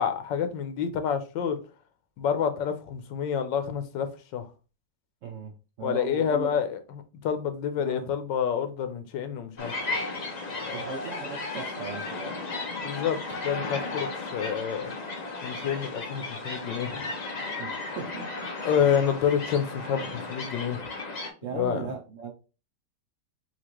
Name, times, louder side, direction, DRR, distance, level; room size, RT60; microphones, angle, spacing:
voice 1, 0.0-1.6 2.2-4.5 5.8-6.8 7.2-10.0 10.6-10.8 12.8-14.9 15.4-17.1 18.6-20.8 21.5-21.9, left 8 dB, 90° left, 1.5 m, -28 dB
voice 2, 5.2-6.5 7.8-8.1 10.7-12.4 17.6-18.5 21.4-22.3, right 5 dB, 65° right, 0.8 m, -38 dB
sound 1, 9.6-21.3, left 3 dB, 50° left, 0.5 m, -35 dB
5.8 x 2.5 x 3.0 m
omnidirectional pair, 1.9 m